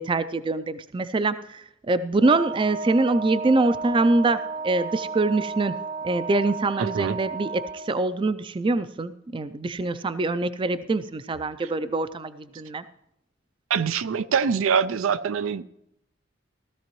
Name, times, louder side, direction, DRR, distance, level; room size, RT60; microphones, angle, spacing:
voice 1, 0.0-5.8 6.0-12.8, right 2 dB, 25° right, 0.4 m, -24 dB
Wind instrument woodwind instrument, 2.2-7.9, right 4 dB, 65° right, 1.3 m, -33 dB
voice 2, 6.8-7.2 13.7-15.6, right 6 dB, 85° right, 0.4 m, -24 dB
16.5 x 13.5 x 3.1 m
head